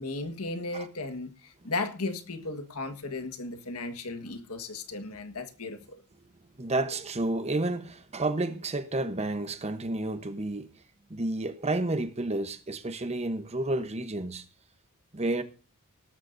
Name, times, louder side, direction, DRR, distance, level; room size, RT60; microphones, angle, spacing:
voice 1, 0.0-6.0, left 3 dB, 75° left, 1.5 m, -35 dB
voice 2, 6.6-10.7 11.1-14.4 15.1-15.4, right 2 dB, 30° right, 0.9 m, -30 dB
18.0 x 13.0 x 2.7 m
head